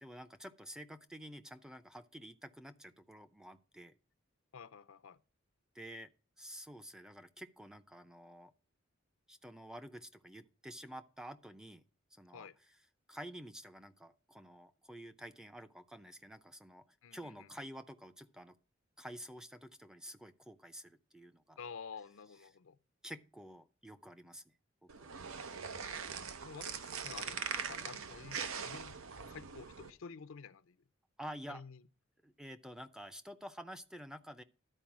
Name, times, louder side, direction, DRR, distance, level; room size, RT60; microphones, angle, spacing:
voice 1, 0.0-3.9 5.7-6.1 6.4-8.5 9.3-11.8 12.1-12.5 13.1-18.6 19.0-21.6 23.0-24.6 24.8-25.1 31.2-31.6 32.2-34.4, equal, 5° right, 0.5 m, -50 dB
voice 2, 4.5-5.2 12.3-12.6 17.0-17.5 21.6-22.8 26.4-29.0 29.3-30.8 31.5-31.8, left 5 dB, 75° left, 0.6 m, -50 dB
sound 1, 24.9-29.9, right 6 dB, 85° right, 0.8 m, -42 dB
12.0 x 4.7 x 5.9 m
head